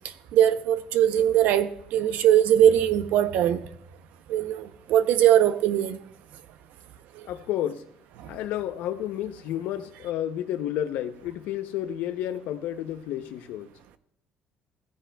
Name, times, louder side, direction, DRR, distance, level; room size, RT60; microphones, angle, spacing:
voice 1, 0.3-3.6 4.3-6.0, right 11 dB, 65° right, 0.7 m, -21 dB
voice 2, 7.3-7.8 8.3-13.7, left 11 dB, 70° left, 0.6 m, -31 dB
15.0 x 10.0 x 2.3 m
cardioid pair, 175°, 3 cm